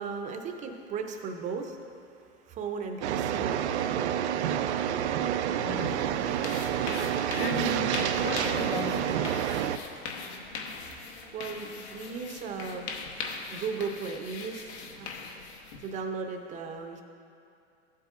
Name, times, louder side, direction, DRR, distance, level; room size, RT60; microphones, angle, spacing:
voice 1, 0.0-1.9 2.4-3.5 10.7-12.9 13.5-15.1 15.8-17.0, right 5 dB, 20° right, 4 dB, 0.6 m, -36 dB
sound 1, 3.0-9.8, right 9 dB, 85° right, 0.5 m, -28 dB
sound 2, 5.8-16.0, left 4 dB, 75° left, 1.1 m, -40 dB
voice 2, 7.4-9.2, left 6 dB, 55° left, 6 dB, 0.8 m, -36 dB
13.5 x 8.2 x 2.5 m, 2.5 s
supercardioid pair, 135°, 33 cm